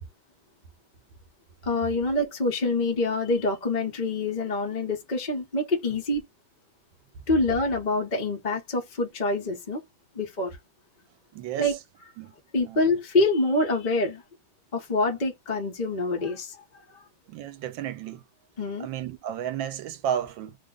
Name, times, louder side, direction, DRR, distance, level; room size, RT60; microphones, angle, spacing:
voice 1, 1.6-6.2 7.3-9.8 10.1-10.6 11.6-11.8 12.5-14.2 14.7-16.6 16.9-17.0 18.6-18.9, left 2 dB, 35° left, 0.7 m, -26 dB
voice 2, 11.3-11.8 12.2-12.3 12.7-12.9 17.3-18.2 18.8-20.6, right 9 dB, 75° right, 1.4 m, -32 dB
3.3 x 2.2 x 3.6 m
omnidirectional pair, 2.2 m